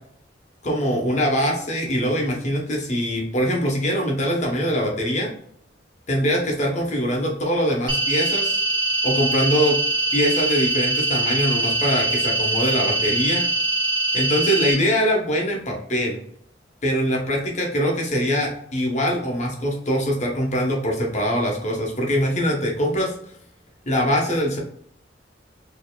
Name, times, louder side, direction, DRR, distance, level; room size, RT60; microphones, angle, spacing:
voice 1, 0.6-5.3 6.1-8.6 9.0-9.8 10.1-13.4 14.1-16.2 16.8-23.1 23.9-24.6, equal, 40° left, 0 dB, 1.0 m, -23 dB
sound 1, 7.9-14.7, right 2 dB, 30° right, 1.4 m, -23 dB
4.3 x 2.9 x 2.2 m, 0.66 s
head